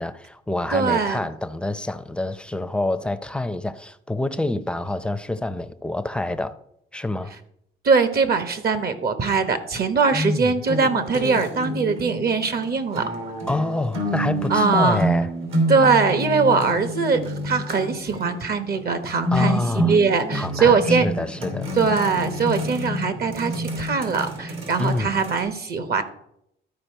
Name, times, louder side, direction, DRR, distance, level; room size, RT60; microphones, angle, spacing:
voice 1, 0.0-6.6 6.9-7.3 10.1-10.6 13.5-15.3 19.3-20.0 20.3-21.7 24.8-25.2, left 2 dB, 5° left, 0.6 m, -27 dB
voice 2, 0.7-1.2 7.8-13.0 14.5-15.0 15.7-21.1 21.8-26.0, right 5 dB, 50° right, 1.1 m, -21 dB
sound 1, 10.7-25.4, equal, 75° right, 2.7 m, -28 dB
13.0 x 4.8 x 4.5 m
cardioid pair, 90°, 20 cm